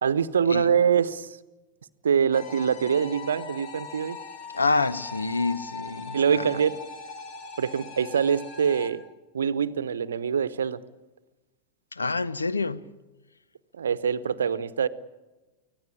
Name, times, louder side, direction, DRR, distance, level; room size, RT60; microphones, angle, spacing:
voice 1, 0.0-1.4 2.0-4.2 6.1-6.7 7.6-9.0 9.3-10.8 13.7-14.9, right 7 dB, 65° right, 0.9 m, -24 dB
sound 1, 2.3-8.9, left 4 dB, 45° left, 2.9 m, -40 dB
voice 2, 4.5-6.5 11.9-12.8, left 3 dB, 80° left, 0.8 m, -27 dB
24.5 x 17.0 x 8.6 m
figure-of-eight pair, 90°, 0 cm